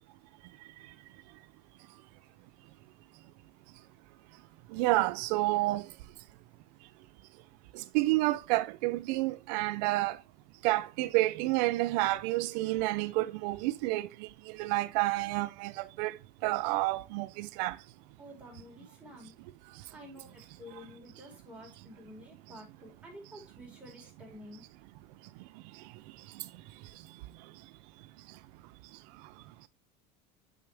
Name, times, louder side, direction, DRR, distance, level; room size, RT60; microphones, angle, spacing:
voice 1, 4.7-5.9 7.7-10.2 10.6-17.8 26.3-26.5, right 19 dB, 85° right, 0.6 m, -30 dB
voice 2, 18.2-19.3 19.9-24.6, left 1 dB, 5° right, 4.7 m, -50 dB
9.1 x 7.0 x 3.4 m
cardioid pair, 155°, 21 cm